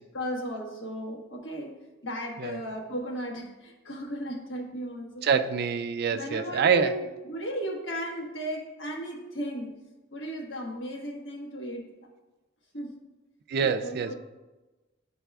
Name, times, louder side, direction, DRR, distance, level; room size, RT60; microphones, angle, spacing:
voice 1, 0.1-1.8 2.0-5.3 6.1-9.7 10.1-11.9 12.7-13.0 13.8-14.2, equal, 70° left, -1 dB, 1.3 m, -35 dB
voice 2, 5.2-7.0 13.5-14.1, right 6 dB, 55° right, 10 dB, 0.3 m, -25 dB
10.5 x 4.0 x 2.3 m, 1.1 s
head